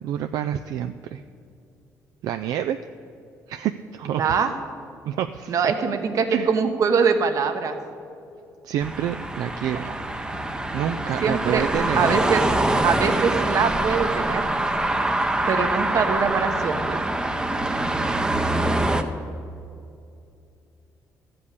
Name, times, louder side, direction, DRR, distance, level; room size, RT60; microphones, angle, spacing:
voice 1, 0.0-1.2 2.2-2.8 3.5-4.2 5.0-5.6 6.3-6.5 8.6-9.9 10.7-12.2, right 10 dB, 80° right, 8 dB, 0.3 m, -28 dB
voice 2, 4.1-4.5 5.5-7.8 9.8-9.9 11.2-11.6 12.0-12.4 12.8-14.4 15.5-17.0, right 6 dB, 60° right, 7 dB, 1.0 m, -23 dB
sound 1, 8.8-19.0, right 1 dB, 15° right, 0.7 m, -24 dB
13.0 x 5.3 x 8.2 m, 2.5 s
cardioid pair, 110°, 6 cm